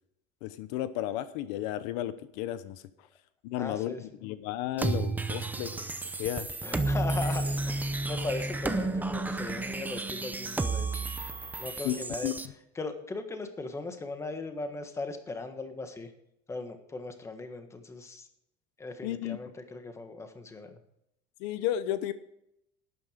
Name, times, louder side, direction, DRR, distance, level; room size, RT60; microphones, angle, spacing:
voice 1, 0.4-2.8 3.4-5.9 6.2-6.5 11.8-12.0 12.2-12.3 19.0-19.4 21.4-22.1, left 13 dB, 80° left, 13 dB, 0.9 m, -33 dB
voice 2, 3.5-4.0 5.3-5.4 6.6-11.0 11.6-12.3 12.7-16.1 16.5-18.3 18.8-20.8, left 3 dB, 15° left, 7 dB, 1.5 m, -38 dB
sound 1, 4.8-12.5, right 2 dB, 10° right, 0.6 m, -32 dB
12.5 x 9.5 x 5.1 m, 0.78 s
cardioid pair, 150°, 20 cm